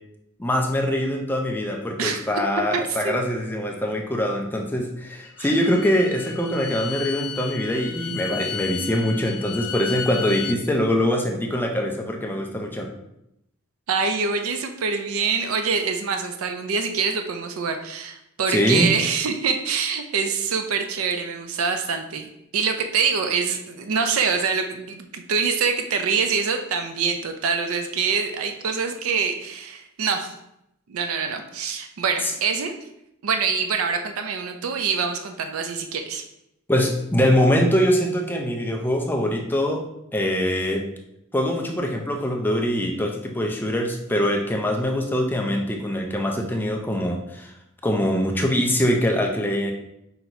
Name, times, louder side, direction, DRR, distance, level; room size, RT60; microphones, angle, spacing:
voice 1, 0.4-12.9 18.5-18.9 36.7-39.8 40.1-40.8 41.3-47.5 47.8-49.7, equal, 10° left, 2 dB, 0.4 m, -23 dB
voice 2, 2.7-3.2 5.4-5.5 13.9-22.3 22.5-30.3 30.9-32.7 33.2-36.2, right 5 dB, 75° right, 6 dB, 0.4 m, -25 dB
Bowed string instrument, 5.2-10.6, left 8 dB, 85° left, 0.4 m, -34 dB
5.8 x 2.9 x 2.6 m, 0.82 s
head